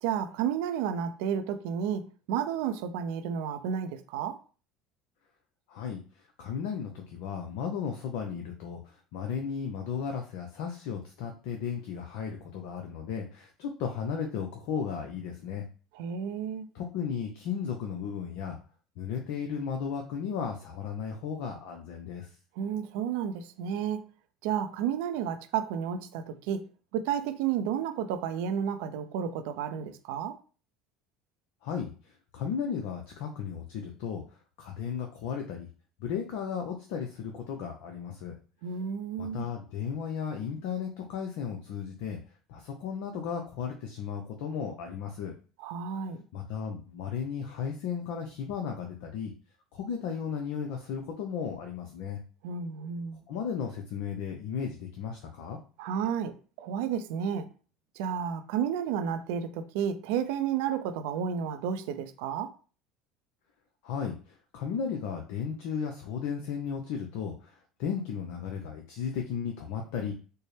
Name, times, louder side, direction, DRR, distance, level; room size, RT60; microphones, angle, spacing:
voice 1, 0.0-4.4 15.9-16.7 22.6-24.0 24.4-26.7 26.9-30.4 38.6-39.5 45.6-46.2 52.4-53.2 55.8-57.5 58.0-62.5, right 8 dB, 75° right, 0.5 m, -32 dB
voice 2, 5.7-6.0 6.4-15.6 16.7-18.6 19.0-22.3 31.6-34.2 34.6-35.7 36.0-38.3 39.2-42.2 42.5-45.3 46.3-49.3 49.7-52.2 53.3-55.6 63.8-67.5 67.8-70.1, left 7 dB, 70° left, 0.6 m, -35 dB
4.3 x 2.1 x 3.3 m
hypercardioid pair, 85°, 0 cm